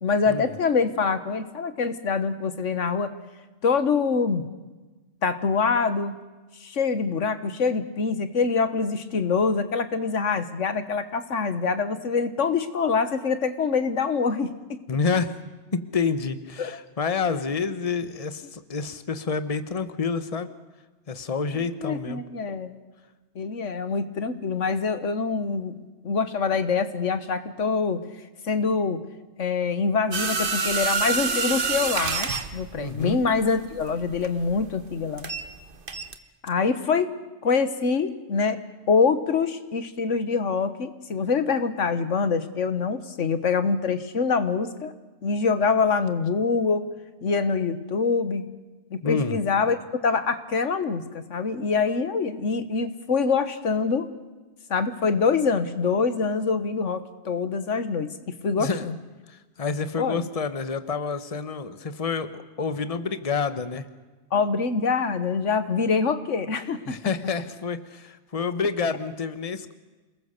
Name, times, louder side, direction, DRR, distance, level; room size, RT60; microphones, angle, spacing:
voice 1, 0.0-3.1 3.6-4.4 5.2-6.1 6.6-14.8 16.6-16.8 21.8-22.7 23.4-25.7 26.0-28.0 28.4-29.0 29.4-35.3 36.4-37.1 37.4-38.6 38.9-44.9 45.2-46.8 47.2-48.4 48.9-49.8 50.0-54.1 54.7-59.0 60.0-60.3 64.3-67.1, left 5 dB, 85° left, 11 dB, 1.7 m, -25 dB
voice 2, 14.9-15.3 15.7-20.5 21.1-22.2 32.7-33.2 49.0-49.4 58.6-58.9 59.3-63.9 66.9-69.7, left 5 dB, 30° left, 11 dB, 1.2 m, -28 dB
sound 1, 30.1-35.6 35.9-36.2, right 4 dB, 50° right, 1.4 m, -27 dB
28.0 x 20.5 x 6.7 m, 1.2 s
omnidirectional pair, 1.2 m